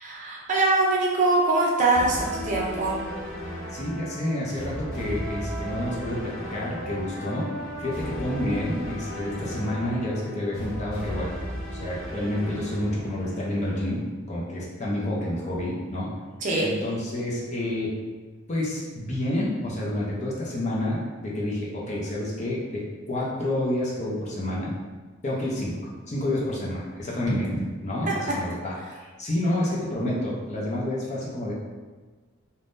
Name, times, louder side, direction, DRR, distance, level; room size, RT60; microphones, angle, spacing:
voice 1, 0.0-3.0 16.4-16.7 27.2-27.4 28.0-28.1, right 2 dB, 35° right, -4 dB, 0.5 m, -23 dB
sound 1, 1.9-13.9, equal, 75° left, 0.8 m, -35 dB
voice 2, 3.7-7.5 7.8-11.3 11.7-14.0 14.3-16.1 16.6-17.9 18.5-22.8 23.1-24.7 25.2-25.8 26.1-27.5 27.8-28.7 29.0-31.5, left 1 dB, 35° left, -5 dB, 0.5 m, -29 dB
3.4 x 2.1 x 2.6 m, 1.4 s
head